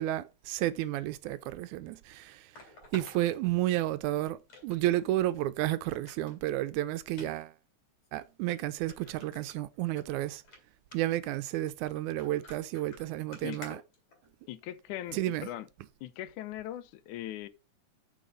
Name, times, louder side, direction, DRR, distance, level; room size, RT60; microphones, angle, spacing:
voice 1, 0.0-2.5 2.9-7.5 8.1-10.4 10.9-13.8 15.1-15.5, right 15 dB, 80° right, 2.0 m, -31 dB
sound 1, 1.5-1.6 2.5-4.0 4.5-5.1 5.4-5.5 5.9-6.4 7.1-7.3 8.0-8.1 8.5-8.6 8.9-10.0 10.4-10.6 10.9-11.2 12.0-14.6 15.4-15.6 16.1-16.2, left 3 dB, 60° left, 4.6 m, -51 dB
voice 2, 14.5-15.7 16.0-17.5, left 13 dB, 85° left, 2.2 m, -40 dB
7.0 x 6.8 x 5.2 m
omnidirectional pair, 3.5 m